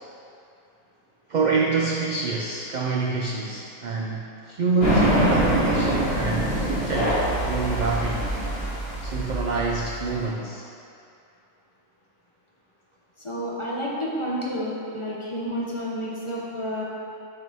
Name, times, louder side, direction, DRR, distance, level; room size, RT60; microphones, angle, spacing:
voice 1, 1.3-8.3 9.0-10.6, right 4 dB, 75° right, -1 dB, 0.4 m, -26 dB
sound 1, 4.8-10.2, right 1 dB, 50° left, 1.8 m, -24 dB
voice 2, 13.2-16.8, equal, 30° left, -5 dB, 0.7 m, -30 dB
6.7 x 5.0 x 3.4 m, 2.6 s
omnidirectional pair, 1.3 m